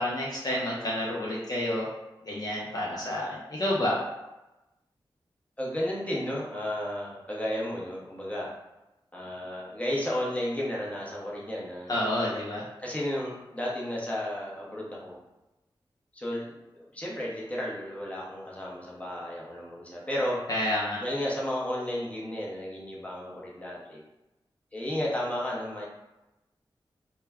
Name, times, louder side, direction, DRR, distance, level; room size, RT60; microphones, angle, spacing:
voice 1, 0.0-1.9 2.2-4.0 11.9-12.6 20.5-21.0, left 1 dB, 45° left, -5 dB, 0.5 m, -29 dB
voice 2, 5.6-8.5 9.1-12.0 12.8-15.2 16.1-16.6 16.9-20.4 21.0-24.0 24.7-25.9, left 1 dB, 15° left, -5 dB, 0.8 m, -33 dB
2.1 x 2.1 x 3.5 m, 0.99 s
wide cardioid pair, 65°, 9 cm